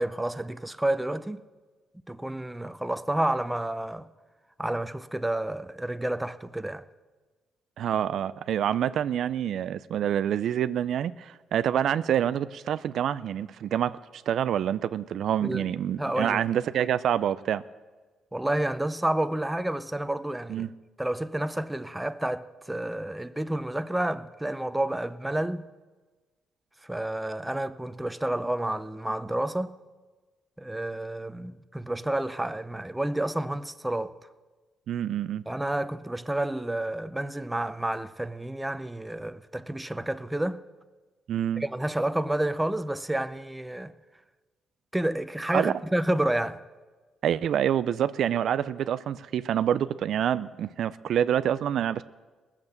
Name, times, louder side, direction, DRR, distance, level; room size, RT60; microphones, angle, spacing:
voice 1, 0.0-1.4 2.1-4.1 4.6-6.8 15.4-15.7 16.0-16.4 18.3-20.7 21.0-25.7 26.8-29.7 30.6-34.2 35.5-40.6 41.6-43.9 44.9-46.6, right 1 dB, 10° right, 0.6 m, -30 dB
voice 2, 7.8-17.6 20.5-20.7 34.9-35.4 41.3-41.6 45.5-45.8 47.2-52.0, right 10 dB, 70° right, 0.4 m, -27 dB
18.5 x 7.3 x 7.9 m
cardioid pair, 90°, 0 cm